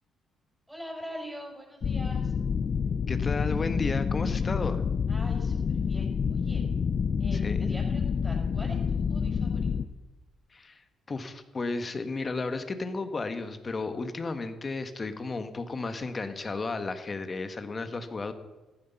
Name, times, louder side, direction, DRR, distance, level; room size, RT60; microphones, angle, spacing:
voice 1, 0.7-2.3 5.1-6.6 7.2-9.7, equal, 5° right, -1 dB, 6.0 m, -43 dB
sound 1, 1.8-9.9, left 6 dB, 50° left, 0.5 m, -28 dB
voice 2, 3.1-4.8 7.3-7.7 10.5-18.3, left 3 dB, 35° left, 9 dB, 1.4 m, -33 dB
15.0 x 11.5 x 5.7 m, 1.2 s
cardioid pair, 90°, 0 cm